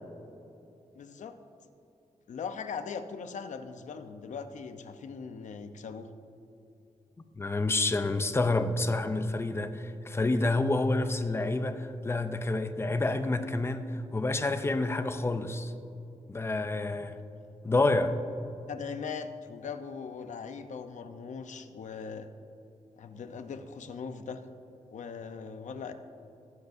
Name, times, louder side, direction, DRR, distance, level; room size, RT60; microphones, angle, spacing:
voice 1, 0.9-1.4 2.3-6.1 17.1-17.2 18.7-22.3 23.0-24.4 24.9-25.9, left 5 dB, 80° left, 8 dB, 0.7 m, -40 dB
voice 2, 7.4-15.7 16.3-17.2 17.6-18.1, left 2 dB, 20° left, 9 dB, 0.5 m, -28 dB
19.0 x 8.0 x 2.6 m, 2.8 s
wide cardioid pair, 170°, 12 cm